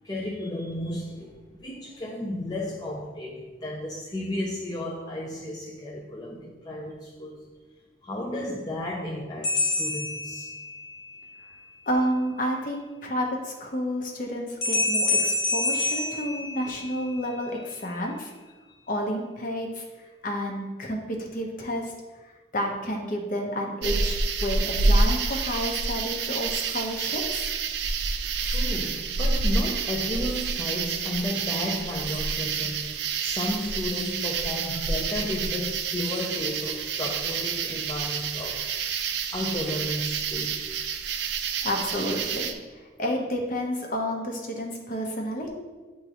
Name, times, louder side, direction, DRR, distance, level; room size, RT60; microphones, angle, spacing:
voice 1, 0.0-7.4 8.0-10.5 28.4-38.6 39.3-40.7, left 1 dB, 20° left, -3 dB, 0.5 m, -33 dB
sound 1, 9.4-11.0 14.6-17.1, left 2 dB, 85° left, 1.7 m, -27 dB
voice 2, 11.9-18.3 18.9-19.9 20.2-21.9 22.2-27.5 41.6-42.5 43.0-45.5, equal, 45° left, 1 dB, 0.9 m, -30 dB
sound 2, 23.8-42.5, right 4 dB, 60° right, 0.4 m, -28 dB
9.0 x 3.7 x 2.9 m, 1.3 s
head